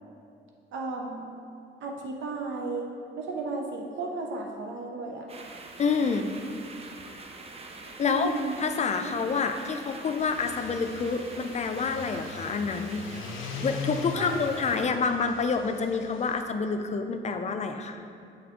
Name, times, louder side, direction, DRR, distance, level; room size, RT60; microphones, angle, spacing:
voice 1, 0.7-1.2 1.8-2.9 3.2-5.3 8.0-8.6 14.2-14.4, right 3 dB, 70° right, 1 dB, 0.7 m, -34 dB
sound 1, 5.3-14.9, right 3 dB, 30° right, 0.5 m, -44 dB
voice 2, 5.8-6.3 8.0-8.3 8.6-13.1 13.6-18.0, left 5 dB, 35° left, 7 dB, 0.4 m, -28 dB
sound 2, 10.1-16.4, left 4 dB, 90° left, 0.5 m, -40 dB
7.8 x 3.6 x 3.5 m, 2.4 s
cardioid pair, 90°, 20 cm